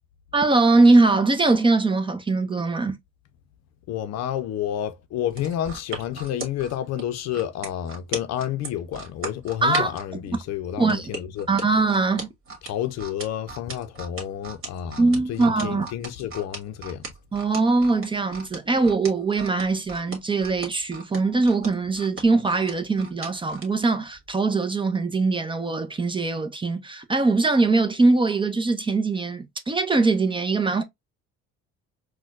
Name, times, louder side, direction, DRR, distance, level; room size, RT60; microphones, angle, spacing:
voice 1, 0.3-3.0 9.6-9.9 10.3-10.4 10.8-11.1 11.5-12.3 15.0-15.9 17.3-30.8, right 3 dB, 15° right, 0.5 m, -21 dB
voice 2, 3.9-11.5 12.6-17.1, left 11 dB, 60° left, 0.6 m, -30 dB
sound 1, 5.3-10.1 10.9-23.7 24.1-24.3, right 3 dB, 45° right, 1.6 m, -36 dB
4.2 x 2.2 x 2.3 m
supercardioid pair, 85°, 30 cm